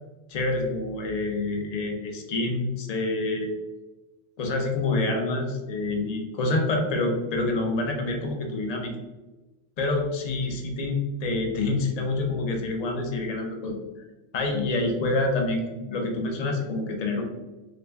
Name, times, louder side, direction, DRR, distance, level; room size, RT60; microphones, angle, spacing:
voice 1, 0.3-3.5 4.4-8.9 9.8-13.8 14.3-17.2, left 2 dB, 50° left, 2 dB, 0.4 m, -27 dB
3.1 x 2.5 x 3.3 m, 1.1 s
omnidirectional pair, 1.2 m